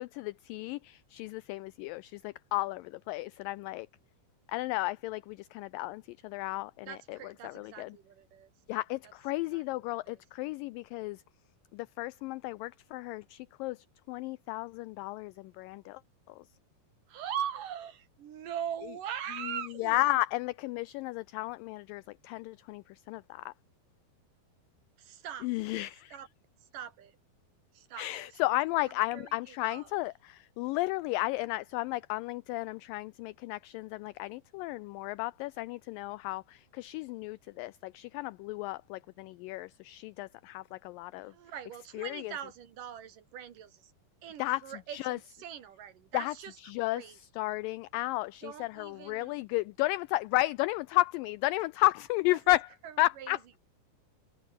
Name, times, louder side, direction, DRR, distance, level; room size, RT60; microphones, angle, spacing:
voice 1, 0.0-3.9 4.5-8.0 8.7-11.2 11.7-16.0 16.3-16.4 19.4-23.5 25.4-26.2 28.0-41.3 41.9-42.3 44.4-44.6 44.9-45.2 46.1-46.3 46.6-52.7 53.0-53.6, left 19 dB, 85° left, 1.9 m, -33 dB
voice 2, 6.9-8.8 9.5-9.6 10.1-10.2 17.1-20.0 25.0-25.5 26.1-26.3 26.7-27.2 27.7-28.3 29.1-29.9 41.2-43.9 44.2-46.6 46.9-47.2 48.4-49.4 52.3-52.4 52.8-53.6, right 9 dB, 60° right, 3.3 m, -41 dB
omnidirectional pair, 4.4 m